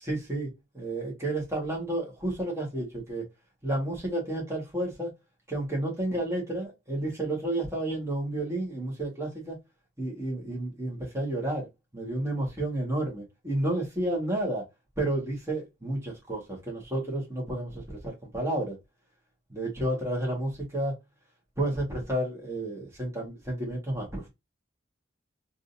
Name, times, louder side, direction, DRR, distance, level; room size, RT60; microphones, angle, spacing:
voice 1, 0.1-3.3 3.6-5.1 5.5-9.6 10.0-11.7 11.9-14.7 15.0-18.8 19.5-21.0 21.6-24.3, right 1 dB, 15° right, 1.5 m, -31 dB
3.7 x 2.7 x 2.6 m
head